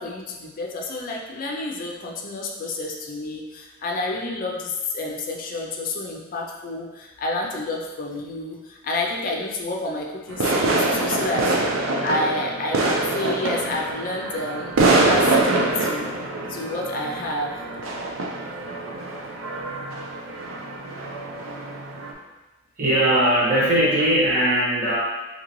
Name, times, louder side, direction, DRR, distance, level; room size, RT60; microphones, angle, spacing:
voice 1, 0.0-16.1 16.5-17.5, left 2 dB, 45° left, -1 dB, 0.5 m, -29 dB
sound 1, 10.3-22.1, right 2 dB, 85° right, 0.5 m, -24 dB
voice 2, 22.8-25.0, right 1 dB, 45° right, -6 dB, 1.2 m, -19 dB
3.8 x 2.8 x 3.0 m, 1.1 s
head